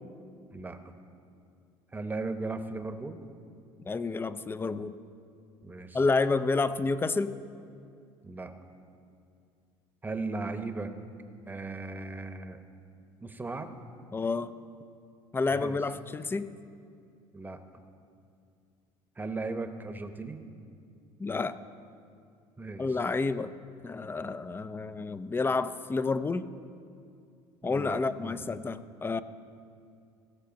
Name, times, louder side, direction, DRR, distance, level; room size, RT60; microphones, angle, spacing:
voice 1, 1.9-3.2 5.6-6.0 8.2-8.5 10.0-10.9 11.5-12.6 13.2-13.7 15.5-15.8 17.3-17.6 19.2-20.4 22.6-23.0 27.6-28.8, right 3 dB, 15° right, 8 dB, 0.9 m, -37 dB
voice 2, 3.9-5.0 5.9-7.4 14.1-14.5 15.3-16.5 21.2-21.6 22.8-23.5 23.8-26.5 27.6-29.2, left 3 dB, 20° left, 14 dB, 0.5 m, -29 dB
16.5 x 6.5 x 5.2 m, 2.4 s
supercardioid pair, 90°, 12 cm